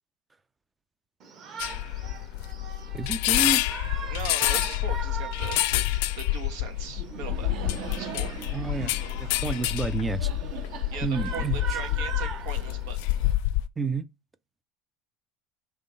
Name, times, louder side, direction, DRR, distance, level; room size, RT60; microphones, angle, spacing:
Shout, 1.2-13.3, right 6 dB, 35° right, 1.4 m, -41 dB
sound 1, 1.6-13.7, left 16 dB, 80° left, 0.4 m, -28 dB
voice 1, 2.9-3.6 8.5-10.3 11.0-11.6 13.8-14.1, right 4 dB, 10° right, 0.4 m, -30 dB
voice 2, 4.1-5.8 6.1-7.6 7.9-8.4 10.9-13.1, right 6 dB, 85° right, 1.7 m, -39 dB
Laughter, 6.7-12.5, right 6 dB, 60° right, 1.7 m, -42 dB
5.7 x 3.7 x 5.2 m
cardioid pair, 165°, 0 cm